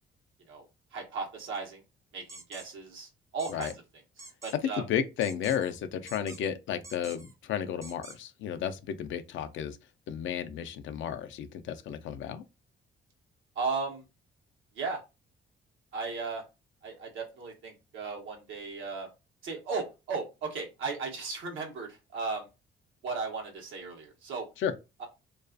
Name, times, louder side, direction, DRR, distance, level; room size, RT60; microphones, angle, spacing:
voice 1, 0.9-1.8 2.1-3.7 4.4-4.8 13.5-14.1 14.7-15.0 15.9-16.4 16.8-19.1 19.4-22.5 23.0-24.5 25.0-25.1, right 4 dB, 80° right, 0.9 m, -36 dB
sound 1, 2.3-2.7 3.4-3.8 4.2-4.6 5.2-5.7 6.1-6.5 6.8-7.3 7.8-8.2, right 2 dB, 15° right, 0.4 m, -47 dB
voice 2, 4.8-9.8 10.1-12.4 24.6-24.7, left 9 dB, 75° left, 0.4 m, -33 dB
2.3 x 2.3 x 2.4 m
cardioid pair, 90°, 20 cm